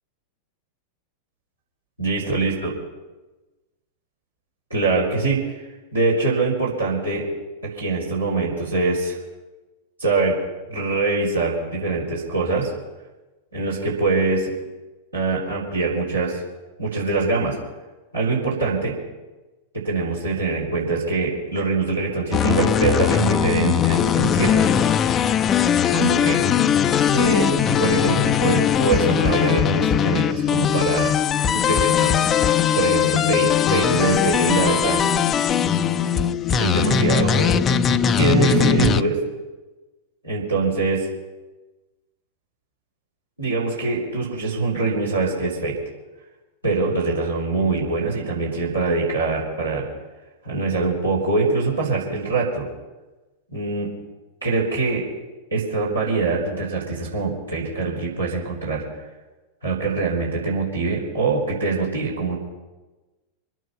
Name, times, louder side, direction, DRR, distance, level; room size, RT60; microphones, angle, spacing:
voice 1, 2.0-2.7 4.7-5.7 5.9-7.2 7.6-9.2 10.0-10.4 10.7-12.7 13.5-14.5 15.1-16.4 16.8-17.6 18.1-18.9 19.7-25.1 25.9-26.4 26.9-31.1 31.5-35.0 36.6-37.6 38.2-39.2 40.2-41.1 43.4-45.8 46.6-49.9 50.4-52.7 53.5-53.9 54.4-55.0 55.5-58.9 59.6-62.4, right 3 dB, 85° right, -6 dB, 4.4 m, -23 dB
sound 1, 22.3-39.0, left 8 dB, 25° left, 0.6 m, -20 dB
25.5 x 9.2 x 5.8 m, 1.2 s
figure-of-eight pair, 90°, 0 cm